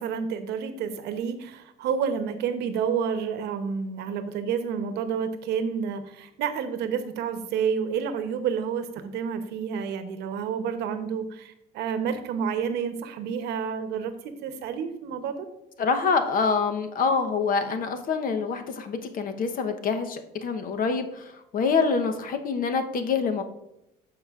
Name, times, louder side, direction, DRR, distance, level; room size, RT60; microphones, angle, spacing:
voice 1, 0.0-15.5, right 7 dB, 80° right, 9 dB, 0.9 m, -29 dB
voice 2, 15.8-21.2 21.5-23.4, left 5 dB, 55° left, 7 dB, 0.9 m, -26 dB
14.0 x 5.0 x 2.4 m, 0.86 s
cardioid pair, 110°, 17 cm